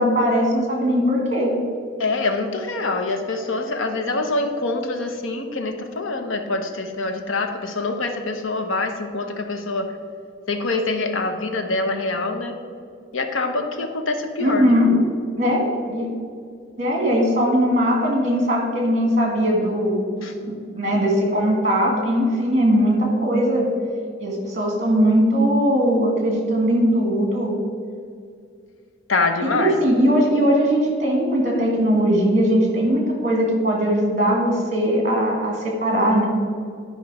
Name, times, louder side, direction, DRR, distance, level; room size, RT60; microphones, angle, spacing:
voice 1, 0.0-1.5 14.4-14.9 15.4-15.6 15.9-16.1 16.8-23.7 24.2-27.6 29.4-36.3, equal, 35° right, 0 dB, 1.9 m, -20 dB
voice 2, 2.0-9.9 10.5-12.5 13.1-14.9 20.2-20.3 29.1-29.7, left 3 dB, 90° left, 6 dB, 0.9 m, -25 dB
10.5 x 5.3 x 4.9 m, 2.2 s
head